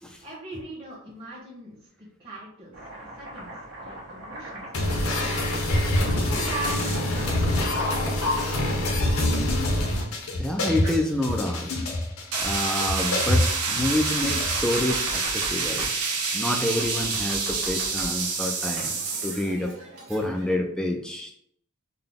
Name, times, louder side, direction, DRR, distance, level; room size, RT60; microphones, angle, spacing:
voice 1, 0.2-2.7 3.1-3.5 3.8-5.4 6.1-8.6, right 2 dB, 25° right, -9 dB, 1.1 m, -40 dB
Domestic sounds home sounds, 2.7-9.1 10.8-12.0 13.7-16.0 16.8-18.3 18.8-20.5, right 1 dB, 70° right, 1.3 m, -40 dB
sound 1, 4.7-14.8, left 1 dB, 70° left, 0.8 m, -25 dB
voice 2, 10.3-11.7 12.4-15.9 16.3-18.9 19.2-19.8 20.1-21.3, left 1 dB, 5° left, 3 dB, 0.3 m, -28 dB
sound 2, 12.3-19.5, right 4 dB, 85° right, 0.9 m, -28 dB
3.8 x 2.2 x 3.5 m, 0.68 s
head